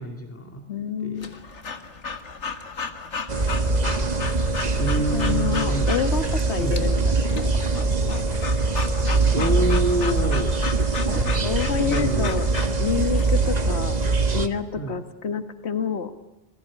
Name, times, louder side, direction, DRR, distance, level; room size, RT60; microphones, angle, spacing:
voice 1, 0.0-0.7 1.0-1.3 4.8-5.9 6.6-6.8 9.3-10.6 11.8-12.3 14.8-14.9, right 1 dB, 10° left, 3 dB, 2.4 m, -27 dB
voice 2, 0.7-1.3 5.1-8.2 11.2-12.5 12.8-14.0 14.3-16.1, left 6 dB, 70° left, 10 dB, 1.8 m, -28 dB
Breathing / Dog, 1.2-13.3, left 5 dB, 90° left, 2.1 m, -35 dB
sound 1, 3.3-14.5, right 3 dB, 40° right, 1.5 m, -23 dB
27.0 x 20.0 x 9.7 m, 0.89 s
omnidirectional pair, 1.2 m